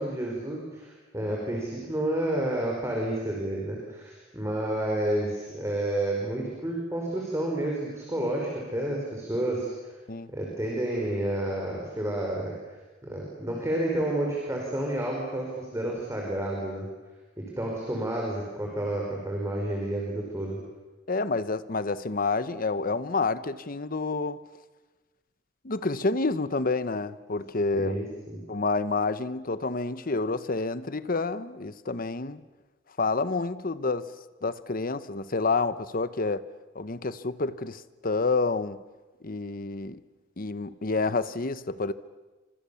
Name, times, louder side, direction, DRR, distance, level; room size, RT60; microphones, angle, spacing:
voice 1, 0.0-9.9 10.3-12.5 13.0-16.9 17.4-20.6 27.7-28.4, right 1 dB, 15° right, 5.1 m, -30 dB
voice 2, 21.1-24.4 25.6-28.0 28.5-32.4 33.0-34.0 34.4-36.4 36.7-38.8 39.2-40.0 40.4-41.9, left 3 dB, 50° left, 1.0 m, -28 dB
29.5 x 25.5 x 7.1 m
head